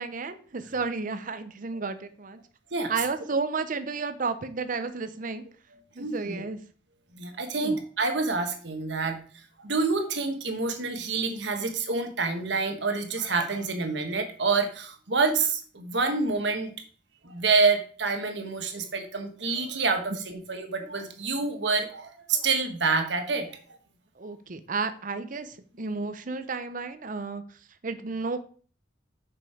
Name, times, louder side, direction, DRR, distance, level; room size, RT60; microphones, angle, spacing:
voice 1, 0.0-2.4 2.9-5.4 5.9-6.6 7.5-7.8 20.3-20.4 24.2-28.4, right 4 dB, 45° right, 10 dB, 0.7 m, -32 dB
voice 2, 6.0-6.4 7.1-9.2 9.6-16.7 17.2-23.6, right 4 dB, 65° right, 5 dB, 1.3 m, -27 dB
6.9 x 5.4 x 4.9 m, 0.42 s
head